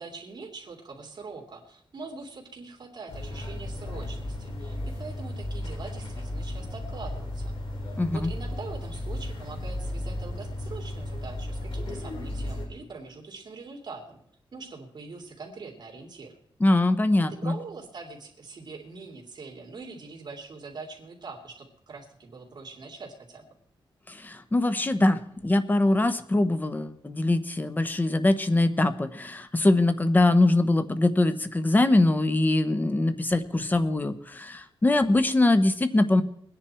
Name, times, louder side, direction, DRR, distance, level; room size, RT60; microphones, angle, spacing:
voice 1, 0.0-7.5 8.1-14.2 14.5-16.4 17.3-23.4, right 4 dB, 50° right, 1 dB, 3.0 m, -43 dB
sound 1, 3.1-12.7, left 1 dB, 75° left, 4.4 m, -34 dB
voice 2, 8.0-8.3 16.6-17.5 24.1-36.2, left 2 dB, 20° left, 11 dB, 1.0 m, -23 dB
21.5 x 10.0 x 4.4 m, 0.69 s
wide cardioid pair, 165°, 9 cm